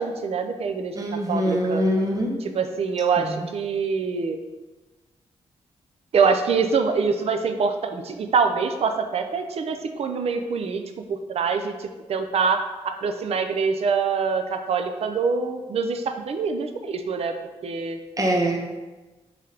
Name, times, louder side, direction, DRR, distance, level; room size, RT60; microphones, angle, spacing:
voice 1, 0.0-1.0 1.3-1.9 2.4-4.4 6.1-10.8 11.1-17.3 17.6-18.0, right 5 dB, 60° right, 7 dB, 0.4 m, -25 dB
voice 2, 0.9-2.3 3.2-3.5 18.2-18.7, equal, 30° right, 1 dB, 0.7 m, -24 dB
3.2 x 2.9 x 3.7 m, 1.2 s
cardioid pair, 85°, 11 cm